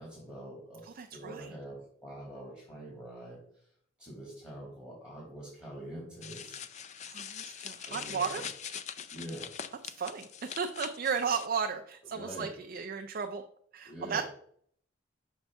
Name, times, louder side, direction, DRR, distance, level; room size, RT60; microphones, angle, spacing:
voice 1, 0.0-3.7 4.0-6.7 7.9-8.5 9.1-9.6 11.2-11.3 12.0-12.5 13.9-14.2, right 1 dB, 10° left, -5 dB, 2.0 m, -45 dB
voice 2, 0.8-1.5 7.1-8.4 9.9-13.4 13.7-14.2, right 6 dB, 45° right, 5 dB, 0.4 m, -34 dB
sound 1, 6.2-11.5, left 8 dB, 35° left, 0.4 m, -43 dB
6.1 x 5.4 x 3.5 m, 0.62 s
head